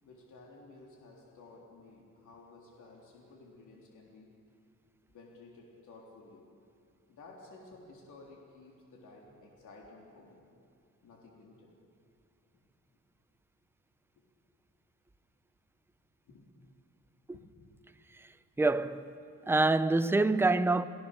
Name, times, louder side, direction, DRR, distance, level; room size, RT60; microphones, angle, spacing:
voice 1, 0.0-4.3 5.1-6.5 7.1-10.5 11.0-11.7 12.5-12.6 16.3-16.5 17.3-17.7, left 3 dB, 80° left, 3.7 m, -54 dB
voice 2, 18.6-19.2 19.5-20.8, right 2 dB, 10° right, 0.5 m, -26 dB
30.0 x 18.5 x 6.7 m
wide cardioid pair, 155°, 30 cm